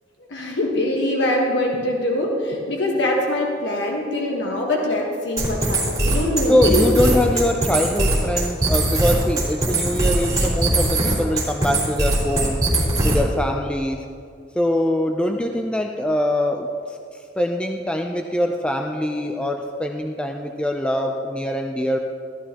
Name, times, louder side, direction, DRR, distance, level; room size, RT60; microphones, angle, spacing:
voice 1, 0.3-7.2, left 1 dB, 75° left, -1 dB, 1.3 m, -23 dB
sound 1, 5.4-13.4, right 2 dB, 20° right, 3.2 m, -21 dB
voice 2, 6.5-12.6 13.0-14.1 14.6-16.7 17.4-22.0, left 1 dB, 5° left, 3 dB, 0.4 m, -23 dB
14.0 x 13.0 x 2.9 m, 2.4 s
head